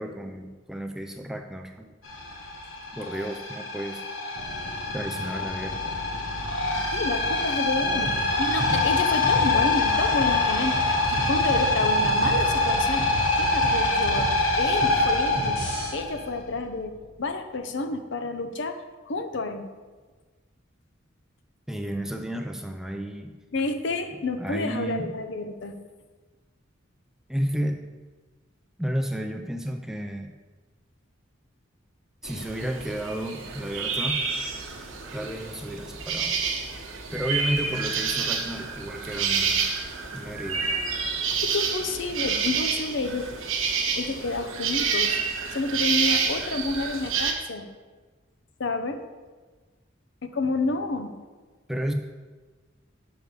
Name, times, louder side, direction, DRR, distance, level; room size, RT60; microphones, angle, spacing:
voice 1, 0.0-1.9 2.9-4.0 4.9-5.9 7.8-8.3 21.7-23.3 24.4-25.2 27.3-27.8 28.8-30.3 32.2-34.3 35.1-36.4 37.1-39.7 40.1-40.8 51.7-51.9, right 1 dB, ahead, 4 dB, 0.4 m, -32 dB
sound 1, 2.0-16.6, left 2 dB, 85° left, 1.4 m, -25 dB
voice 2, 6.9-8.1 8.4-10.7 11.1-13.1 13.3-14.3 14.6-15.6 15.9-16.9 17.2-19.7 23.5-25.8 41.4-43.3 43.9-45.2 45.5-47.7 48.6-49.0 50.2-51.1, left 3 dB, 60° left, 7 dB, 0.7 m, -29 dB
sound 2, 8.1-15.9, equal, 35° left, 2.7 m, -33 dB
sound 3, 32.2-47.3, right 5 dB, 85° right, 1.0 m, -28 dB
6.6 x 4.7 x 6.6 m, 1.3 s
head